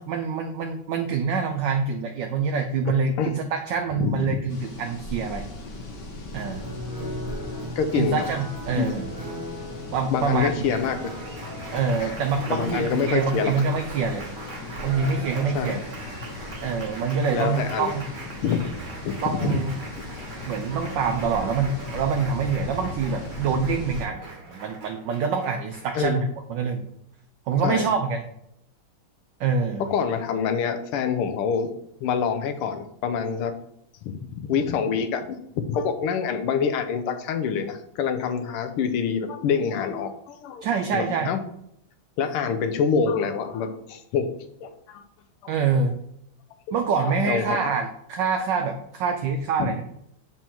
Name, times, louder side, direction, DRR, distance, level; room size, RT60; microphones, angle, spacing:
voice 1, 0.0-5.4 6.3-6.6 7.9-9.1 9.9-10.8 11.7-14.2 14.8-15.8 16.6-18.0 19.2-19.7 20.5-26.9 27.5-28.2 29.4-29.9 40.6-41.3 45.5-45.9 46.7-49.8, right 5 dB, 75° right, 5 dB, 1.0 m, -26 dB
voice 2, 4.0-4.4 7.8-8.3 8.8-8.9 10.1-11.1 12.0-12.1 12.5-13.5 15.5-15.8 17.3-17.9 18.4-18.6 19.0-19.6 26.0-26.2 27.6-27.9 29.8-31.7 32.0-33.5 34.0-35.3 35.5-40.6 40.9-41.4 42.2-44.3 44.6-45.0 45.4-45.5 46.7-46.8 47.0-47.7 49.6-49.7, left 6 dB, 80° left, 8 dB, 1.6 m, -26 dB
sound 1, 4.5-24.1, left 2 dB, 55° left, 1.6 m, -38 dB
Applause, 6.4-26.0, right 1 dB, 50° right, 0.5 m, -39 dB
7.2 x 4.6 x 2.9 m, 0.75 s
omnidirectional pair, 2.4 m